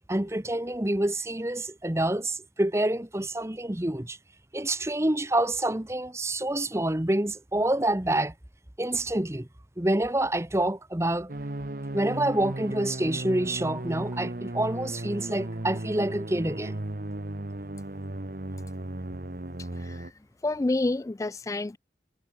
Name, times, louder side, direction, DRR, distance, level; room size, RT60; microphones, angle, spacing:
voice 1, 0.1-4.2 4.5-8.3 8.8-9.5 9.8-11.3 11.9-16.8, right 1 dB, 15° right, 1.0 m, -27 dB
sound 1, 11.3-20.1, right 1 dB, 50° right, 1.2 m, -35 dB
voice 2, 19.6-21.8, left 2 dB, 15° left, 0.3 m, -29 dB
head